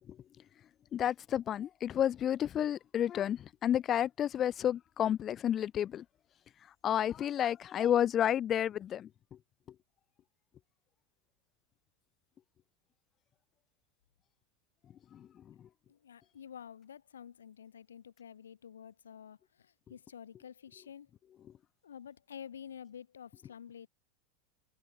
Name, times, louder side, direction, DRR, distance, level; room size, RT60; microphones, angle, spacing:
voice 1, 0.9-6.0 6.8-9.1 15.1-15.3, left 10 dB, 35° left, 0.4 m, -31 dB
voice 2, 15.9-21.1 21.8-23.9, left 8 dB, 90° left, 1.2 m, -50 dB
hypercardioid pair, 95°, 0 cm